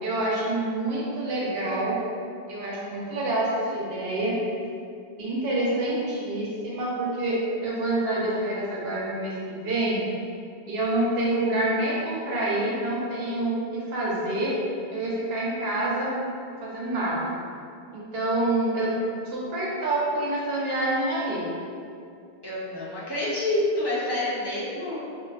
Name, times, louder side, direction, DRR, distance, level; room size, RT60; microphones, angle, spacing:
voice 1, 0.0-2.0 2.5-4.4 5.2-10.0 10.7-14.6 14.9-16.1 16.6-17.3 17.9-18.9 19.2-21.5, right 1 dB, 65° right, -5 dB, 0.8 m, -27 dB
voice 2, 22.4-25.0, left 1 dB, 35° left, -8 dB, 0.4 m, -27 dB
2.5 x 2.4 x 2.2 m, 2.4 s
omnidirectional pair, 1.1 m